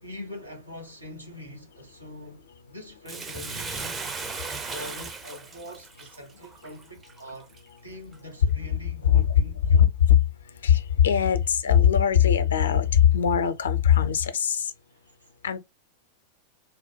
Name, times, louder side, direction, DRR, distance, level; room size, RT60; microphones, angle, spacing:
voice 1, 0.0-4.1 4.6-7.5 7.8-9.9 14.9-15.3, left 1 dB, 85° right, 1.1 m, -43 dB
Bathtub (filling or washing), 3.0-7.6 8.1-8.2, right 4 dB, 20° right, 0.6 m, -36 dB
voice 2, 9.0-9.4 9.7-9.9 10.6-14.7 15.4-15.6, left 9 dB, 65° left, 0.5 m, -20 dB
3.5 x 2.2 x 4.2 m
figure-of-eight pair, 90°, 0 cm